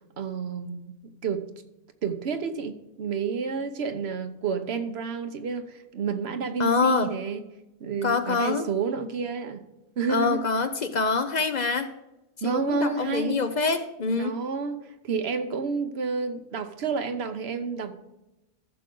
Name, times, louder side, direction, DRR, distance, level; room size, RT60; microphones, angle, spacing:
voice 1, 0.2-0.9 1.2-1.4 2.0-7.4 7.8-9.6 10.0-10.4 12.4-13.4 14.2-17.9, right 5 dB, 75° right, 8 dB, 1.1 m, -30 dB
voice 2, 6.6-7.1 8.0-8.7 10.1-11.9 12.4-14.4, left 4 dB, 50° left, 9 dB, 0.7 m, -25 dB
14.0 x 6.3 x 3.8 m, 0.96 s
omnidirectional pair, 1.1 m